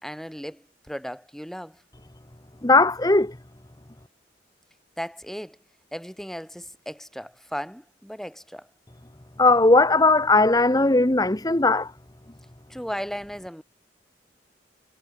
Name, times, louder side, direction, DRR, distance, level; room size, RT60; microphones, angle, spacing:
voice 1, 0.0-1.8 5.0-5.6 5.9-8.7 12.7-13.6, equal, ahead, 5.5 m, -36 dB
voice 2, 2.6-3.3 9.4-11.9, left 2 dB, 20° left, 1.1 m, -18 dB
head